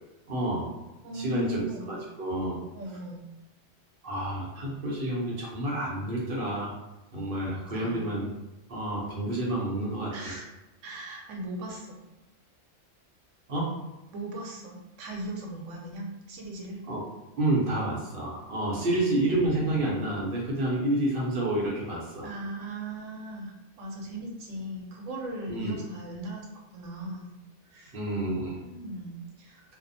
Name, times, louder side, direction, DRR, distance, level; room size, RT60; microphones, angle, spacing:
voice 1, 0.3-0.7 1.1-2.6 4.0-6.8 7.1-8.3 8.7-10.3 13.5-13.7 16.9-17.0 17.4-22.3 25.5-25.8 27.9-28.6, right 1 dB, 55° right, -4 dB, 0.8 m, -29 dB
voice 2, 1.0-2.0 2.7-3.3 7.7-8.0 10.1-10.5 10.8-12.0 14.1-16.8 18.8-19.7 22.2-26.5 26.7-27.3 27.7-28.0 28.5-29.7, right 1 dB, 85° right, 0 dB, 1.0 m, -38 dB
2.6 x 2.1 x 2.6 m, 0.99 s
omnidirectional pair, 1.3 m